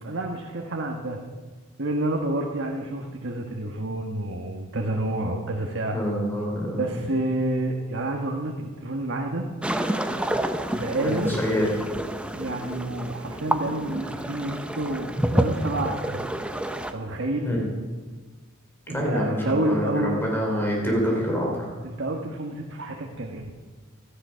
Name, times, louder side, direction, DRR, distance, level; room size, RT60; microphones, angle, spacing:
voice 1, 0.0-1.2 1.8-6.0 6.8-9.5 10.7-11.3 12.3-16.2 16.9-17.5 18.9-20.2 21.8-23.5, right 1 dB, 55° right, 1 dB, 1.4 m, -29 dB
voice 2, 5.9-7.0 11.0-11.7 17.4-17.6 18.9-21.7, equal, 10° left, -1 dB, 3.3 m, -26 dB
sound 1, 9.6-16.9, right 1 dB, 5° right, 0.7 m, -28 dB
17.0 x 14.0 x 5.7 m, 1.4 s
head